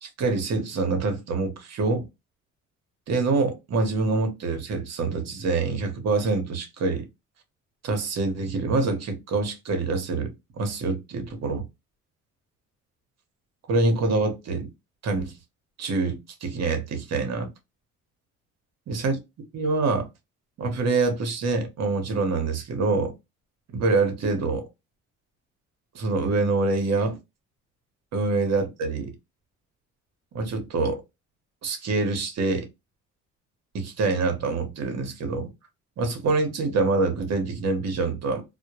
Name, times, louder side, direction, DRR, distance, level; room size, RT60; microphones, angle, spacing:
voice 1, 0.0-2.1 3.1-7.1 7.8-11.7 13.7-14.7 15.0-15.3 15.8-17.5 18.9-19.2 19.5-20.1 20.6-23.1 23.7-24.7 25.9-27.2 28.1-29.1 30.3-31.0 31.6-32.7 33.7-35.5 36.0-38.4, right 3 dB, 60° right, 0.9 m, -25 dB
2.1 x 2.1 x 2.9 m
cardioid pair, 90°, 30 cm